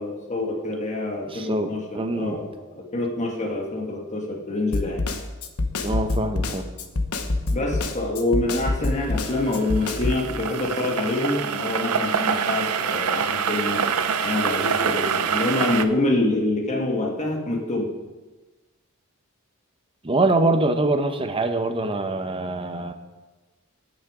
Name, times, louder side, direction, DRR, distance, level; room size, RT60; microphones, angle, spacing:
voice 1, 0.0-2.5 2.7-5.0 7.5-13.8 14.2-17.9, left 2 dB, 35° left, 0 dB, 1.7 m, -26 dB
voice 2, 1.3-2.5 5.8-6.6 20.0-22.9, right 2 dB, 25° right, 7 dB, 0.9 m, -24 dB
Snare drum, 4.7-10.2, left 2 dB, 85° left, 1.0 m, -26 dB
sound 1, 9.0-15.8, right 6 dB, 80° right, 0.7 m, -25 dB
17.5 x 6.3 x 4.9 m, 1.2 s
head